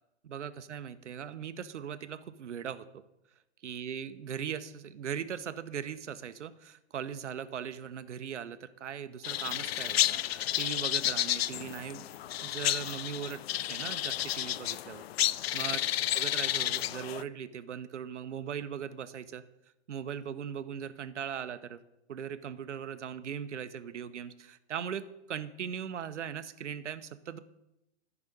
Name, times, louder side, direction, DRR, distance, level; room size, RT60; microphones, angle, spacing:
voice 1, 0.2-3.0 3.6-12.0 12.4-13.4 13.7-15.8 16.1-19.4 19.9-21.8 22.1-27.4, right 8 dB, 85° right, 12 dB, 0.9 m, -39 dB
sound 1, 9.2-17.2, left 13 dB, 60° left, 0.5 m, -31 dB
11.0 x 6.1 x 9.1 m, 0.90 s
hypercardioid pair, 130°, 34 cm